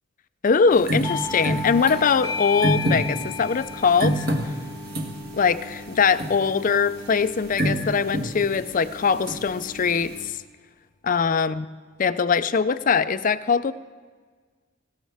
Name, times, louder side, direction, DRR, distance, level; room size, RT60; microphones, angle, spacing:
voice 1, 0.4-4.3 5.3-10.3 11.0-11.6 12.0-13.7, left 5 dB, 45° left, 13 dB, 0.5 m, -22 dB
sound 1, 0.7-10.3, right 1 dB, 55° right, 1.4 m, -29 dB
Doorbell, 1.0-6.3, left 5 dB, 15° left, 0.8 m, -34 dB
19.0 x 16.5 x 3.5 m, 1.5 s
head